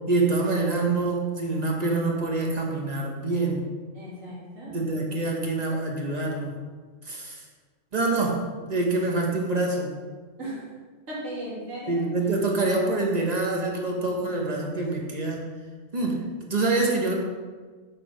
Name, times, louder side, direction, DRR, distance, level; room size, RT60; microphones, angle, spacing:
voice 1, 0.1-3.6 4.7-6.5 7.0-7.4 7.9-10.0 11.9-15.5 15.9-17.1, right 2 dB, 35° right, 0 dB, 1.0 m, -26 dB
voice 2, 3.9-4.8 10.4-10.6 11.1-12.0, right 1 dB, 80° right, -7 dB, 2.7 m, -36 dB
7.2 x 4.8 x 4.4 m, 1.4 s
omnidirectional pair, 1.3 m